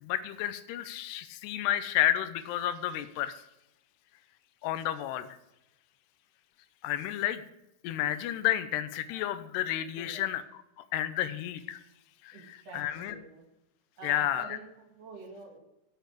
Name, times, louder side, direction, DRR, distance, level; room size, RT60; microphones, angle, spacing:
voice 1, 0.0-3.4 4.6-5.3 6.8-7.5 7.8-10.4 10.9-11.8 12.2-13.2 14.0-14.6, left 12 dB, 85° left, 12 dB, 2.8 m, -31 dB
voice 2, 12.3-13.4 14.0-15.6, right 3 dB, 45° right, 1 dB, 2.5 m, -47 dB
8.7 x 6.2 x 8.2 m, 0.86 s
omnidirectional pair, 4.7 m